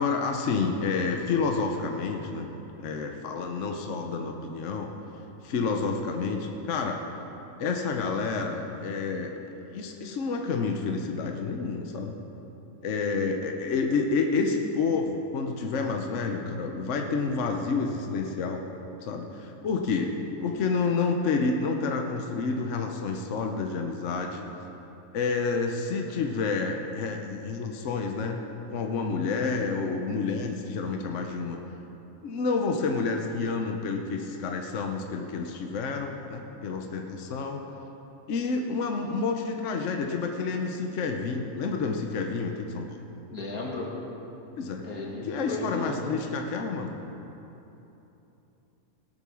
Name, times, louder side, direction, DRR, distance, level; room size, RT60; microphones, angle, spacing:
voice 1, 0.0-2.5 2.8-4.9 5.4-7.0 7.6-9.3 9.7-12.1 12.8-18.6 19.0-24.4 25.1-28.4 28.7-31.6 32.2-37.6 38.3-42.9 44.6-44.8 45.2-46.9, left 4 dB, 60° left, 3 dB, 1.1 m, -29 dB
voice 2, 43.3-43.9 44.9-46.0, left 2 dB, 85° left, -3 dB, 2.5 m, -35 dB
18.5 x 6.8 x 6.3 m, 3.0 s
omnidirectional pair, 1.5 m